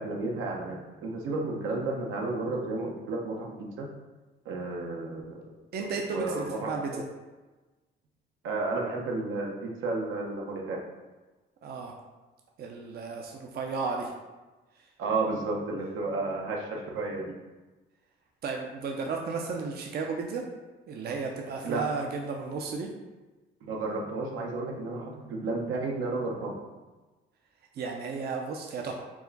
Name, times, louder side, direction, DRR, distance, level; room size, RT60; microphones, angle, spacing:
voice 1, 0.0-3.9 4.4-5.4 5.9-7.0 8.4-10.8 15.0-17.3 21.6-21.8 23.6-26.6, right 3 dB, 85° right, -1 dB, 0.8 m, -32 dB
voice 2, 5.7-7.0 11.6-11.9 12.6-14.1 18.4-20.4 20.9-22.9 27.8-28.9, right 4 dB, 55° right, 1 dB, 0.5 m, -33 dB
4.7 x 2.1 x 3.9 m, 1.2 s
cardioid pair, 90°, 20 cm